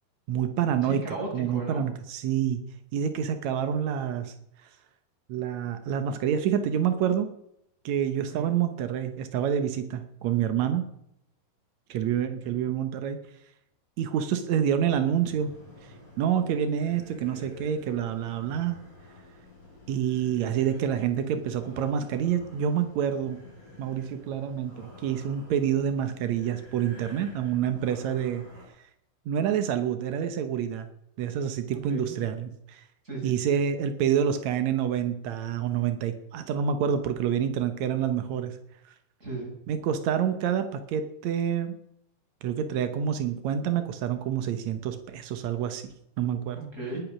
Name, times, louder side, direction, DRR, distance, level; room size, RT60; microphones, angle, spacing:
voice 1, 0.3-1.0 1.3-2.6 2.9-4.3 4.6-4.7 5.3-7.3 7.8-10.8 11.9-13.2 14.0-15.5 15.8-18.8 19.9-23.4 23.8-28.4 29.2-30.9 31.2-32.8 33.2-38.6 39.7-41.8 42.4-45.8 46.2-46.6, right 9 dB, 85° right, 8 dB, 1.5 m, -27 dB
voice 2, 0.8-1.8 8.3-8.5 12.4-12.5 31.9-32.1 33.0-33.3 39.2-39.5 46.5-47.0, right 2 dB, 15° right, -3 dB, 6.7 m, -35 dB
sound 1, 15.0-28.7, left 2 dB, 35° left, 7.2 m, -50 dB
19.5 x 8.5 x 6.1 m, 0.76 s
omnidirectional pair, 4.7 m